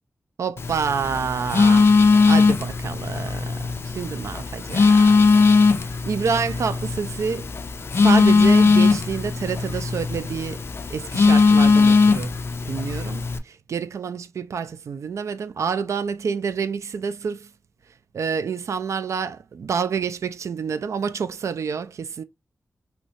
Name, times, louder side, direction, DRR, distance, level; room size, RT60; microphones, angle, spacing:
voice 1, 0.4-1.9 2.3-5.3 5.8-7.5 7.9-10.6 10.9-12.3 12.7-17.5 18.1-22.2, right 6 dB, 80° right, 0.3 m, -28 dB
Telephone, 0.6-13.4, left 4 dB, 55° left, 0.4 m, -19 dB
3.1 x 2.8 x 2.8 m
wide cardioid pair, 130°, 5 cm